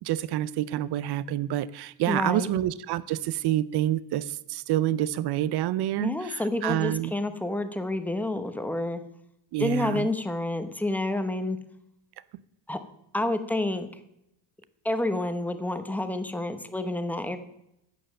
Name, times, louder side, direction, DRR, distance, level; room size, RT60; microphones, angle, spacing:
voice 1, 0.0-7.1 9.5-10.1, right 13 dB, 50° right, 0.6 m, -28 dB
voice 2, 2.1-2.5 6.0-9.0 9.6-11.6 12.7-12.8 13.1-13.9 14.8-17.4, left 1 dB, 5° left, 0.8 m, -29 dB
10.5 x 6.9 x 7.6 m
cardioid pair, 120°, 50 cm